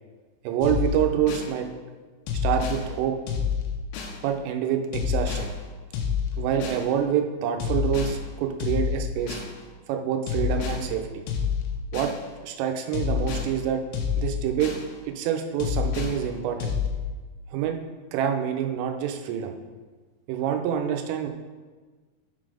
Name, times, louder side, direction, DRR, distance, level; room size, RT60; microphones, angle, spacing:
voice 1, 0.4-1.7 2.4-3.2 4.2-5.5 6.4-9.4 9.9-11.2 11.9-12.1 12.4-13.8 14.2-14.7 15.1-16.8 17.5-17.8 18.1-19.6 20.3-21.3, right 9 dB, 85° right, 4 dB, 3.2 m, -26 dB
sound 1, 0.6-1.5 2.3-2.8 3.3-4.2 4.9-5.5 5.9-6.8 7.6-8.2 8.6-9.5 10.3-10.8 11.3-12.2 12.9-13.5 13.9-14.9 15.6-16.2 16.6-16.9, left 7 dB, 80° left, 2.7 m, -28 dB
9.9 x 4.0 x 4.8 m, 1.4 s
omnidirectional pair, 5.7 m